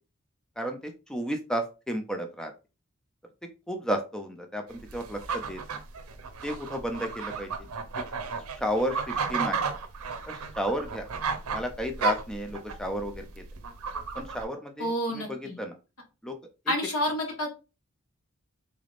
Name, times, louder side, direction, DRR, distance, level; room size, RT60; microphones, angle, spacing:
voice 1, 0.6-2.5 3.7-5.6 6.4-7.5 8.6-9.6 10.3-11.1 11.5-13.3 14.2-15.7 16.2-16.3, equal, 5° left, 4 dB, 0.4 m, -32 dB
sound 1, 4.7-14.5, right 5 dB, 90° right, 0.6 m, -33 dB
voice 2, 14.8-15.6 16.7-17.5, equal, 90° left, 2 dB, 1.3 m, -29 dB
3.8 x 3.4 x 2.4 m, 0.30 s
head